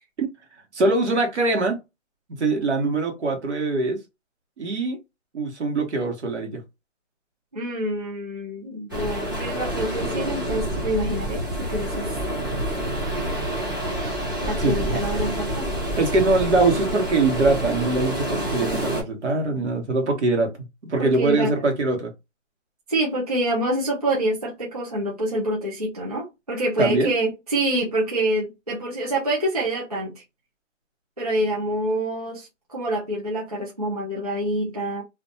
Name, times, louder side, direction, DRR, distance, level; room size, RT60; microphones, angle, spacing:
voice 1, 0.7-1.8 2.4-4.0 4.6-5.0 5.3-6.6 14.6-15.0 16.0-20.5 20.8-22.1 26.8-27.1, right 3 dB, 65° right, 1.2 m, -22 dB
voice 2, 7.5-11.4 11.7-12.2 14.4-15.7 21.0-21.5 22.9-30.1 31.2-35.0, right 1 dB, 30° right, 0.4 m, -26 dB
sound 1, 8.9-19.0, right 1 dB, 15° right, 0.8 m, -27 dB
2.5 x 2.2 x 2.6 m
hypercardioid pair, 175°, 38 cm